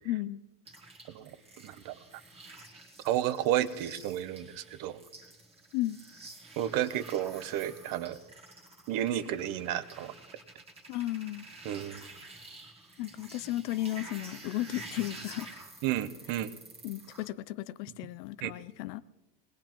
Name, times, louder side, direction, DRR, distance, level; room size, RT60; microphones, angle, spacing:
voice 1, 0.0-0.4 5.7-6.0 10.9-11.4 13.0-15.5 16.8-19.0, left 15 dB, 75° left, 0.6 m, -34 dB
sound 1, 0.6-17.3, right 2 dB, 10° right, 1.5 m, -50 dB
voice 2, 1.6-2.0 3.0-5.0 6.6-8.2 8.9-10.1 11.6-12.1 15.8-16.5 18.4-18.5, right 12 dB, 45° right, 0.8 m, -32 dB
22.0 x 19.0 x 3.0 m
cardioid pair, 165°, 48 cm